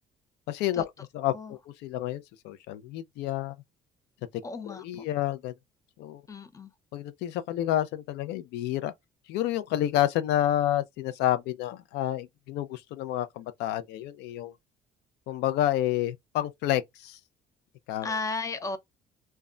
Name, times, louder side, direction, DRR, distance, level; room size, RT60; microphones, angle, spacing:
voice 1, 0.5-3.6 4.6-5.5 6.0-6.2 6.9-8.9 9.3-14.5 15.3-17.2 17.9-18.1, left 12 dB, 85° left, 0.4 m, -29 dB
voice 2, 4.4-5.1 6.3-6.7 18.0-18.8, left 3 dB, 20° left, 0.5 m, -34 dB
2.2 x 2.1 x 3.6 m
cardioid pair, 110°, 17 cm